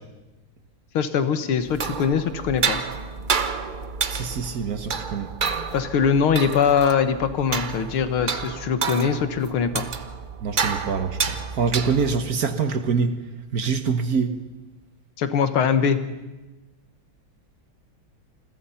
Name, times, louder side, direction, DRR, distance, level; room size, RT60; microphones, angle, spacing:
voice 1, 0.9-2.8 5.7-9.9 15.2-16.0, left 7 dB, 90° left, 11 dB, 2.2 m, -22 dB
sound 1, 1.6-12.3, right 5 dB, 70° right, 0.4 m, -29 dB
voice 2, 4.1-5.3 10.4-13.1 13.5-14.3, right 5 dB, 50° right, 9 dB, 1.5 m, -25 dB
28.0 x 21.5 x 5.8 m, 1.1 s
omnidirectional pair, 2.3 m